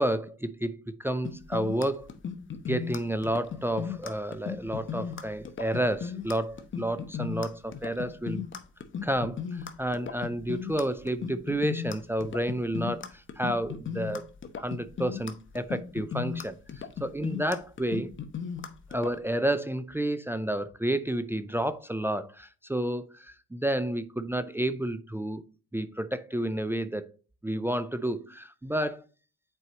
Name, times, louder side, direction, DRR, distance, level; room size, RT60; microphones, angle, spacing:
voice 1, 0.0-2.1 2.6-8.4 9.0-14.3 14.6-18.1 18.9-25.4 25.7-27.1 27.4-29.0, right 1 dB, 10° right, 0.5 m, -30 dB
sound 1, 1.2-19.1, left 7 dB, 40° left, 0.9 m, -36 dB
8.0 x 4.6 x 2.9 m
cardioid pair, 90°, 30 cm